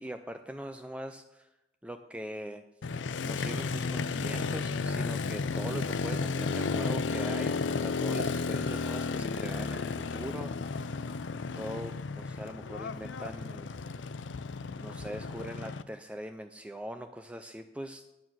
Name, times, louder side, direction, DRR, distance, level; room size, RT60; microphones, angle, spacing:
voice 1, 0.0-1.5 1.8-2.6 3.2-10.9 11.6-13.7 14.8-18.0, equal, 5° right, 7 dB, 0.4 m, -42 dB
Motorcycle, 2.8-15.8, left 4 dB, 75° left, 0.5 m, -33 dB
9.5 x 9.1 x 6.2 m, 0.97 s
head